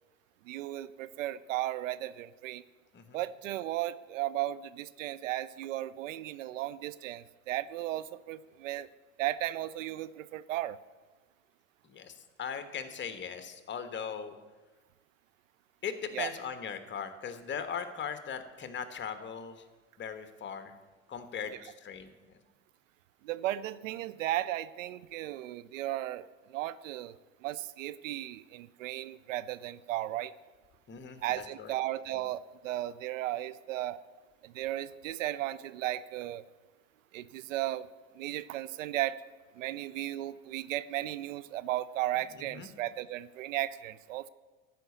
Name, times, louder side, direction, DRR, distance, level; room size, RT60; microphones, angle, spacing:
voice 1, 0.4-2.6 3.1-8.9 9.2-10.8 16.1-16.3 23.2-30.3 31.2-34.0 34.4-36.4 37.1-37.9 38.2-39.2 39.6-44.3, right 14 dB, 75° right, 16 dB, 0.6 m, -35 dB
voice 2, 11.8-14.4 15.8-19.6 20.0-20.7 21.1-22.1 30.9-31.2 31.6-31.7 42.5-42.7, left 7 dB, 30° left, 9 dB, 1.2 m, -39 dB
12.5 x 5.3 x 8.3 m, 1.3 s
hypercardioid pair, 85°, 39 cm